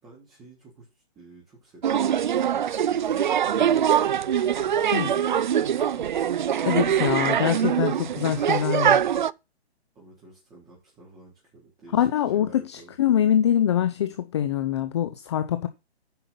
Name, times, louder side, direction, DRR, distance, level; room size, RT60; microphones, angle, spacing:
voice 1, 0.0-4.9 5.2-6.5 8.2-9.1 9.9-12.9, right 3 dB, 10° right, 3.9 m, -51 dB
sound 1, 1.8-9.3, right 9 dB, 45° right, 0.5 m, -23 dB
voice 2, 6.7-9.0 11.9-15.7, left 10 dB, 25° left, 0.6 m, -24 dB
9.5 x 5.7 x 5.6 m
hypercardioid pair, 155°, 32 cm